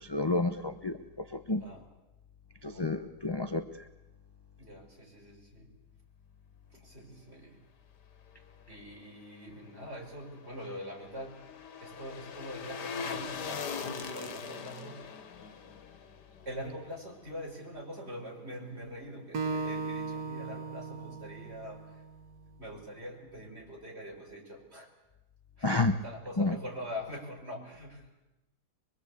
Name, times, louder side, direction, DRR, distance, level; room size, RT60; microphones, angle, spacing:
voice 1, 0.0-1.7 2.6-3.7 25.6-26.0 26.4-26.6, left 2 dB, 30° left, 8 dB, 0.4 m, -30 dB
voice 2, 2.6-2.9 4.6-5.8 6.7-7.6 8.7-11.5 11.8-15.1 16.5-22.0 22.6-24.9 25.6-28.1, equal, 40° right, -1 dB, 5.5 m, -44 dB
sound 1, 10.2-17.4 17.7-17.8, left 6 dB, 85° left, 1.9 m, -41 dB
Acoustic guitar, 19.3-22.6, right 4 dB, 70° right, 1.8 m, -37 dB
23.5 x 23.5 x 8.3 m, 0.99 s
omnidirectional pair, 1.8 m